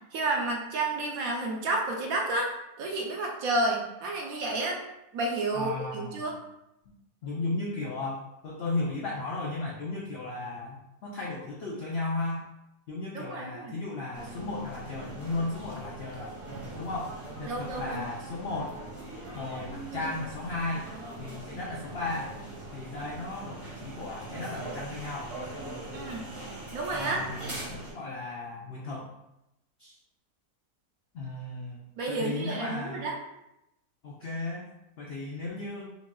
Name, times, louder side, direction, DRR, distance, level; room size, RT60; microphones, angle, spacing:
voice 1, 0.1-2.5 2.8-4.8 5.1-6.3 13.1-13.8 17.5-18.0 25.9-26.3 26.7-27.2 32.0-33.1, right 2 dB, 70° right, 0 dB, 1.0 m, -30 dB
voice 2, 5.5-6.3 7.2-12.4 12.9-16.4 16.7-18.8 19.3-20.9 21.2-22.3 22.7-25.3 26.9-29.1 29.8-30.0 31.1-33.1 34.0-34.7 35.0-36.0, left 2 dB, 90° left, -3 dB, 0.5 m, -35 dB
sound 1, 14.1-27.9, right 2 dB, 25° right, 0.8 m, -41 dB
5.2 x 2.4 x 2.2 m, 0.87 s
omnidirectional pair, 1.7 m